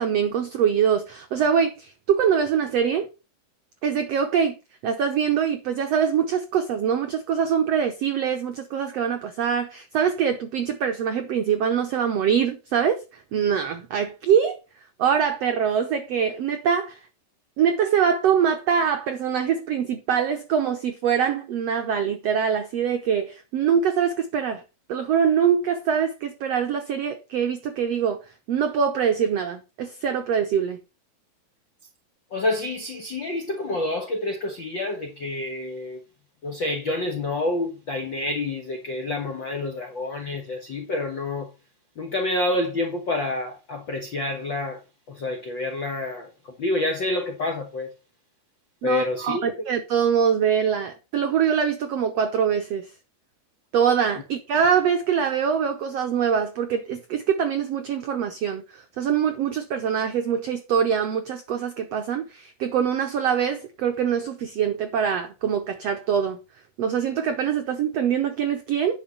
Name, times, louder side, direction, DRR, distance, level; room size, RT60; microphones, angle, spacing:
voice 1, 0.0-3.1 3.8-4.6 4.8-13.0 13.3-14.6 15.0-17.0 17.6-24.6 24.9-28.2 28.5-30.8 48.8-52.9 53.7-66.4 66.8-69.0, right 7 dB, 90° right, 1.4 m, -23 dB
voice 2, 32.3-36.0 36.4-41.5 42.0-44.8 45.1-47.9 48.8-49.5, left 2 dB, 70° left, 1.1 m, -28 dB
10.0 x 6.1 x 5.4 m
omnidirectional pair, 4.3 m